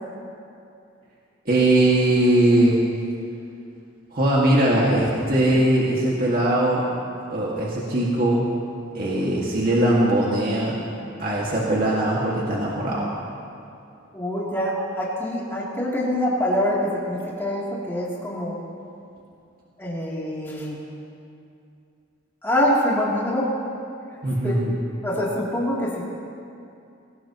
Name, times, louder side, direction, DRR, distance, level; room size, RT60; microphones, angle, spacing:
voice 1, 1.5-2.8 4.1-6.9 7.3-8.4 8.9-10.8 11.2-13.1 24.2-24.8, right 1 dB, 45° right, -5 dB, 2.0 m, -20 dB
voice 2, 14.1-18.5 19.8-20.7 22.4-23.5 24.4-24.6 25.0-26.0, left 1 dB, 10° left, -6 dB, 3.0 m, -25 dB
22.0 x 18.0 x 3.0 m, 2.6 s
head